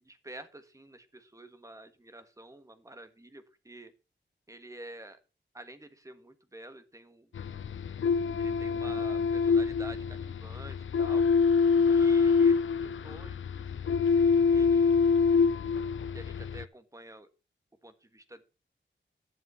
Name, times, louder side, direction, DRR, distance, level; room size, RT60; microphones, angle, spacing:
voice 1, 0.0-3.9 4.5-5.2 5.5-7.3 8.4-11.3 11.9-15.0 16.1-17.3 17.8-18.4, right 1 dB, 15° right, 9 dB, 1.5 m, -49 dB
sound 1, 7.3-16.6, left 5 dB, 80° left, 0.5 m, -25 dB
11.5 x 7.5 x 5.5 m, 0.32 s
wide cardioid pair, 125°, 20 cm